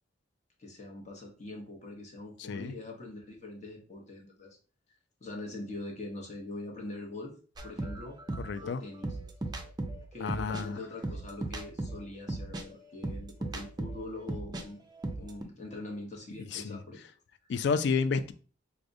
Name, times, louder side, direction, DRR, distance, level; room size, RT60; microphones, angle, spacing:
voice 1, 0.6-4.6 5.2-7.3 7.6-8.2 8.6-9.2 10.1-14.9 15.2-17.0 17.4-17.5, left 2 dB, 40° left, 0.8 m, -43 dB
sound 1, 7.6-14.6 14.9-15.4, right 2 dB, 20° right, 0.4 m, -37 dB
voice 2, 8.4-8.8 10.2-10.8 16.5-16.8 17.5-18.3, left 5 dB, 65° left, 0.3 m, -30 dB
4.8 x 2.1 x 2.5 m
head